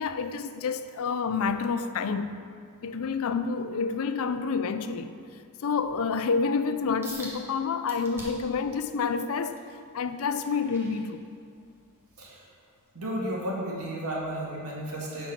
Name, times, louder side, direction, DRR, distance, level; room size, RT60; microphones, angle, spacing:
voice 1, 0.0-2.3 2.8-5.2 5.6-9.6 9.9-11.2, left 5 dB, 70° left, 0.4 m, -28 dB
sound 1, 7.0-7.4 7.9-8.6 9.1-11.6 12.1-12.3 12.9-13.0, right 1 dB, 10° right, 1.4 m, -45 dB
voice 2, 12.9-15.3, right 1 dB, 80° right, 2.0 m, -33 dB
9.1 x 4.6 x 5.8 m
head